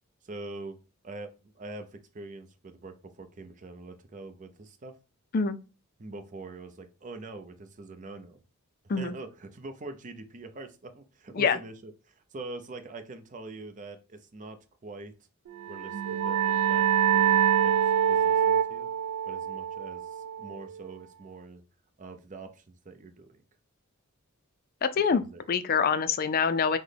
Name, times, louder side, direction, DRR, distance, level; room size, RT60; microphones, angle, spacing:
voice 1, 0.2-0.8 1.0-5.0 6.0-8.4 9.0-15.1 15.7-16.8 17.1-17.8 18.1-18.9 19.2-21.6 22.0-23.4 24.9-25.4, right 2 dB, 35° right, 0.6 m, -44 dB
sound 1, 15.6-21.0, right 9 dB, 85° right, 0.3 m, -25 dB
voice 2, 24.8-25.2 25.5-26.8, left 6 dB, 40° left, 0.4 m, -25 dB
5.9 x 2.1 x 3.3 m
head